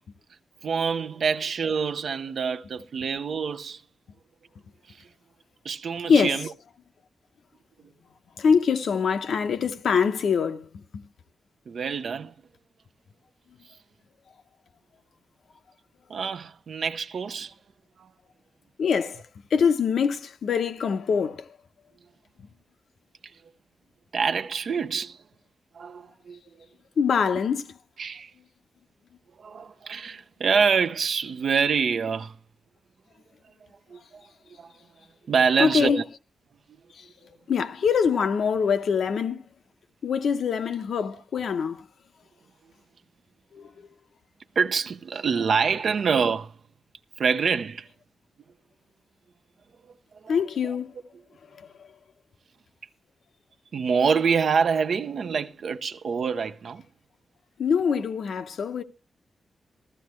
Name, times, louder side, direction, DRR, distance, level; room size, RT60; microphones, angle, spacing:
voice 1, 0.6-3.8 4.9-5.0 5.6-6.5 11.7-12.3 16.1-17.5 18.0-18.1 24.1-25.2 25.7-26.4 28.0-28.3 29.4-32.4 33.9-34.2 34.6-34.7 35.3-36.0 44.6-46.5 47.2-47.9 50.1-50.4 50.6-50.7 53.7-56.8, right 6 dB, 60° right, 0.7 m, -26 dB
voice 2, 6.0-6.4 8.4-11.1 18.8-19.2 19.5-21.5 27.0-27.7 35.6-36.0 37.0-37.1 37.5-39.4 40.0-41.9 43.5-43.7 50.3-50.9 51.6-51.7 57.6-58.8, left 6 dB, 75° left, 0.9 m, -24 dB
14.5 x 14.5 x 3.1 m
wide cardioid pair, 135°, 0 cm